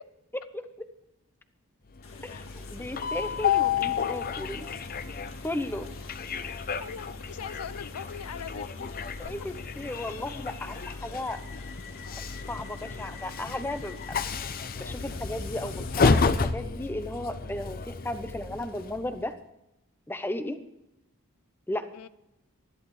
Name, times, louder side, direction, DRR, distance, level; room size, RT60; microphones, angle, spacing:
voice 1, 0.5-0.9 2.2-4.7 5.4-5.9 9.2-11.4 12.2-14.2 14.8-19.4 20.1-20.6 21.7-21.9, left 1 dB, 10° left, 9 dB, 0.9 m, -35 dB
sound 1, 2.0-16.4, left 4 dB, 65° left, 2.1 m, -52 dB
Train, 2.0-19.2, left 5 dB, 40° left, 0.6 m, -31 dB
voice 2, 3.8-4.2 6.8-8.7 21.9-22.1, left 7 dB, 85° left, 16 dB, 0.5 m, -41 dB
20.0 x 13.0 x 3.2 m, 0.88 s
head